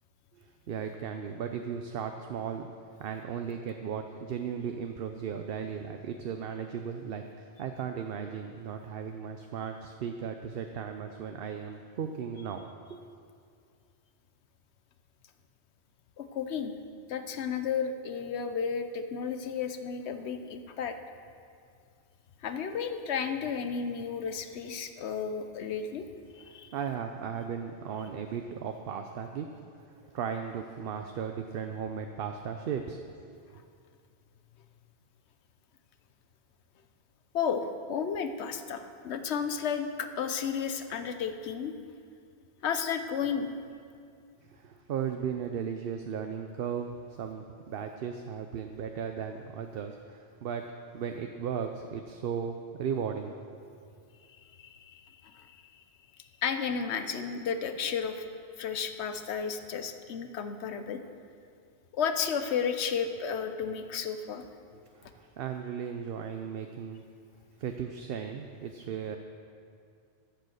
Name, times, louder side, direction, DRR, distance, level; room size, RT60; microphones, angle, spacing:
voice 1, 0.3-2.7 3.0-13.0 26.4-29.5 29.8-33.0 44.4-53.6 64.9-67.0 67.6-69.2, right 7 dB, 65° right, 5 dB, 0.8 m, -36 dB
voice 2, 16.2-16.7 17.1-21.0 22.4-26.1 26.3-26.7 37.3-41.7 42.6-43.5 54.4-55.8 56.4-58.2 58.6-61.0 61.9-64.4, left 6 dB, 80° left, 8 dB, 1.1 m, -33 dB
13.5 x 7.7 x 6.4 m, 2.3 s
omnidirectional pair, 1.1 m